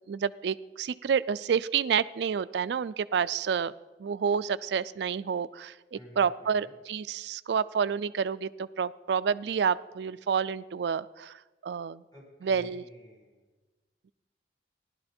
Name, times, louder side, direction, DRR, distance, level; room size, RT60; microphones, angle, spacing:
voice 1, 0.1-3.7 4.0-12.0 12.4-12.8, right 7 dB, 70° right, 16 dB, 0.4 m, -29 dB
voice 2, 5.9-6.7 12.1-13.4, right 1 dB, 20° left, -4 dB, 4.1 m, -50 dB
16.0 x 11.5 x 4.3 m, 1.2 s
head